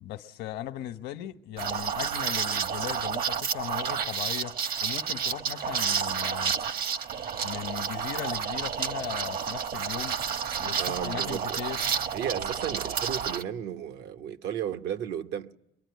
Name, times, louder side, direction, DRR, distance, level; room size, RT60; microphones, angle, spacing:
voice 1, 0.0-6.5 7.4-10.2 10.6-11.8 12.4-12.5, left 12 dB, 85° left, 1.1 m, -38 dB
Liquid, 1.6-13.4, right 7 dB, 60° right, 1.2 m, -30 dB
voice 2, 10.8-11.6 12.1-15.5, right 9 dB, 80° right, 1.0 m, -34 dB
23.5 x 23.0 x 9.5 m
cardioid pair, 110°, 17 cm